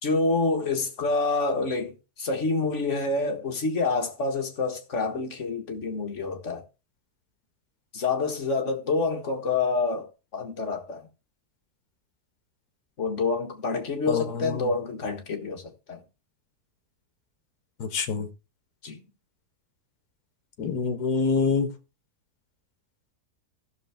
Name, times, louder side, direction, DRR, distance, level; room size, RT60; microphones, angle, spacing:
voice 1, 0.0-6.6 7.9-11.1 13.0-16.0 18.8-19.0, left 3 dB, 50° left, 1.8 m, -27 dB
voice 2, 14.1-14.7 17.8-18.3 20.6-21.7, left 4 dB, 70° left, 1.6 m, -26 dB
15.5 x 6.5 x 3.5 m
omnidirectional pair, 1.7 m